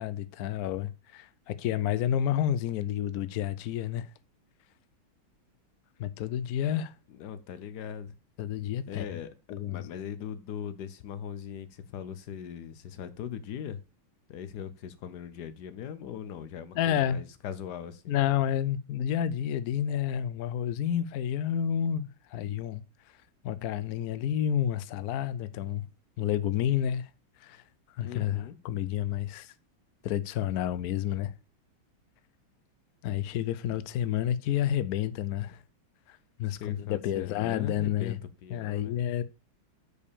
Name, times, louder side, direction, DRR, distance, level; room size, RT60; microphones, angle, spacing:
voice 1, 0.0-4.1 6.0-6.9 8.4-9.0 9.5-9.8 16.7-17.2 18.1-22.8 23.4-25.9 26.2-27.1 27.4-27.6 28.0-29.5 30.0-31.3 33.0-35.6 36.1-38.2 38.5-39.2, left 10 dB, 90° left, 0.8 m, -30 dB
voice 2, 7.1-8.1 8.9-9.3 9.6-13.8 14.3-18.1 28.0-28.6 36.5-39.0, left 8 dB, 60° left, 1.3 m, -40 dB
6.6 x 5.0 x 6.9 m
omnidirectional pair, 2.2 m